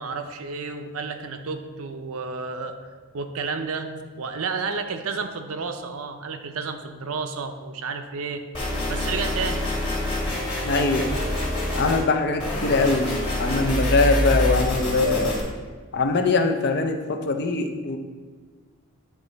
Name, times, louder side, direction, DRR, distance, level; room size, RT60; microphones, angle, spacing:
voice 1, 0.0-2.8 3.1-8.4 8.9-9.7, right 4 dB, 70° right, 7 dB, 0.6 m, -31 dB
sound 1, 8.5-12.0 12.4-15.4, left 1 dB, 25° left, 1.5 m, -26 dB
voice 2, 10.6-11.1 11.7-13.1 13.4-15.4 15.9-18.0, left 3 dB, 50° left, 5 dB, 0.5 m, -22 dB
9.2 x 3.2 x 3.9 m, 1.5 s
head